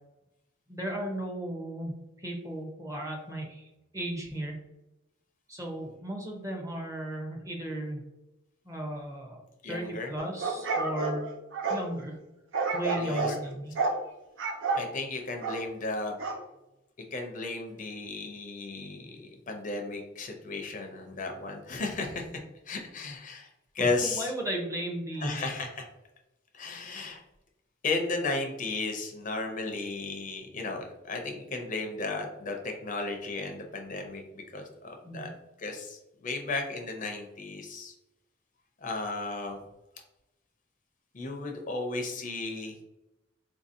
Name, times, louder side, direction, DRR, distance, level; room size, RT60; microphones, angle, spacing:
voice 1, 0.7-4.6 5.5-8.0 8.6-9.4 9.7-11.3 11.7-12.2 12.7-13.8 23.8-25.4 35.0-35.3, right 1 dB, 15° right, 1 dB, 0.6 m, -35 dB
voice 2, 9.6-10.1 13.0-13.4 14.8-16.2 17.1-22.3 22.7-23.5 23.7-24.3 25.2-25.8 26.5-27.2 27.8-35.3 35.6-37.9 38.8-39.6 41.1-42.8, left 3 dB, 40° left, 3 dB, 0.5 m, -34 dB
sound 1, 10.2-11.8 12.5-13.4 13.8-14.0 14.4-14.9 15.4-15.7 16.2-16.4, right 3 dB, 75° right, 0.5 m, -30 dB
3.7 x 2.6 x 2.6 m, 0.94 s
head